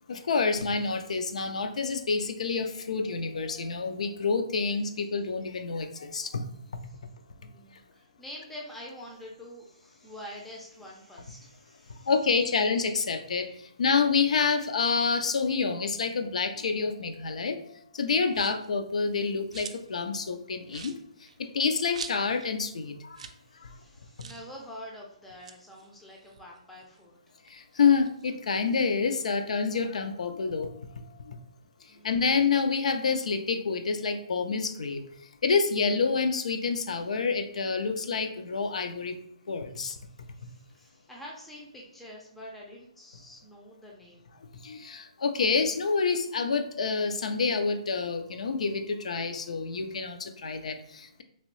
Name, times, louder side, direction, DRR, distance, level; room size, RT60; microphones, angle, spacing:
voice 1, 0.1-6.4 12.1-13.5 13.8-17.6 17.9-20.9 21.5-23.2 23.6-23.7 27.5-30.7 31.3-31.4 32.0-35.0 35.4-39.2 39.5-40.0 44.6-51.2, left 5 dB, 75° left, 8 dB, 0.4 m, -28 dB
voice 2, 7.4-12.1 23.4-27.2 31.9-32.2 39.7-44.3, left 1 dB, 5° left, -3 dB, 0.4 m, -46 dB
sound 1, 18.3-18.7 19.1-20.0 20.3-20.4 20.7-22.5 22.8-22.9 23.1-23.4 23.7-23.8 24.2-24.5 25.2-27.0 27.4-28.9, right 6 dB, 65° right, 0.4 m, -45 dB
2.9 x 2.6 x 3.0 m, 0.71 s
hypercardioid pair, 155°, 4 cm